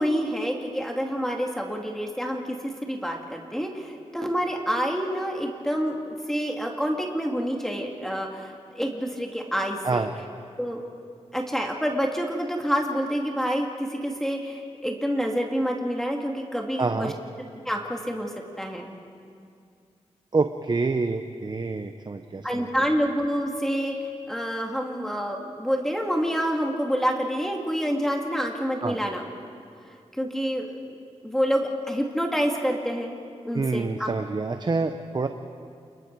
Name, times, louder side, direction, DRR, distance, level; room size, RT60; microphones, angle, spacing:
voice 1, 0.0-10.1 10.6-10.8 11.3-17.1 17.7-18.3 18.6-18.9 22.4-29.2 30.2-31.0 31.2-33.2 33.4-34.1, equal, 5° left, 1 dB, 2.4 m, -27 dB
voice 2, 16.8-17.1 20.3-22.7 28.8-29.0 33.5-35.3, right 3 dB, 40° right, 6 dB, 0.9 m, -27 dB
28.5 x 21.5 x 4.7 m, 2.3 s
cardioid pair, 80°, 11 cm